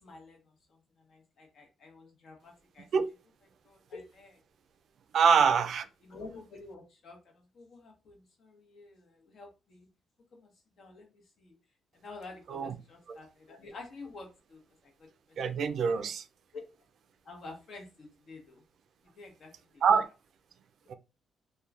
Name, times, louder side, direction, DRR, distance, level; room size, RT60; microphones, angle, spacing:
voice 1, 0.0-2.9 3.6-4.4 5.3-5.4 6.0-9.9 10.3-10.5 10.8-11.5 11.9-15.4 15.6-16.1 16.5-16.6 17.2-18.6 19.1-19.8, left 3 dB, 60° left, 0.9 m, -50 dB
voice 2, 5.1-5.8 12.5-12.7 13.1-13.2 15.4-16.2 19.8-20.1 20.9-21.0, right 6 dB, 65° right, 0.3 m, -25 dB
2.9 x 2.2 x 2.4 m
cardioid pair, 90°, 0 cm